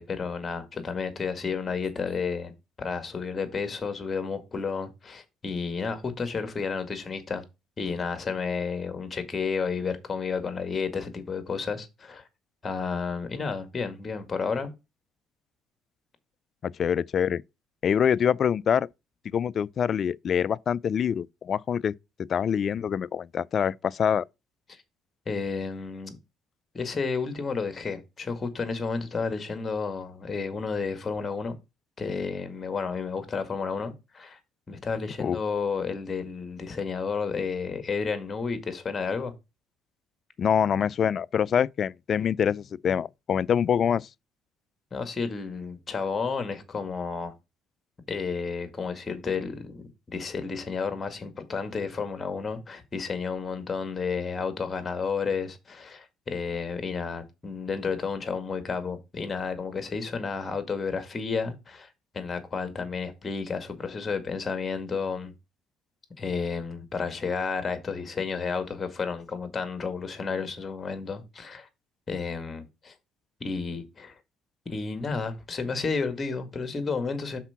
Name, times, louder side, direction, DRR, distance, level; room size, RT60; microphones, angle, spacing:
voice 1, 0.0-2.5 2.8-7.4 7.8-12.2 12.6-14.7 25.3-26.2 26.7-31.5 32.0-34.4 34.7-39.3 44.9-47.3 48.1-61.9 62.1-65.3 66.2-71.7 72.1-72.9 73.4-74.1 74.7-77.4, left 5 dB, 30° left, 1.8 m, -31 dB
voice 2, 16.6-17.4 17.8-18.9 19.3-21.9 22.2-24.2 35.2-35.4 40.4-44.1, left 8 dB, 50° left, 0.3 m, -25 dB
5.8 x 4.5 x 5.8 m
supercardioid pair, 75°, 0 cm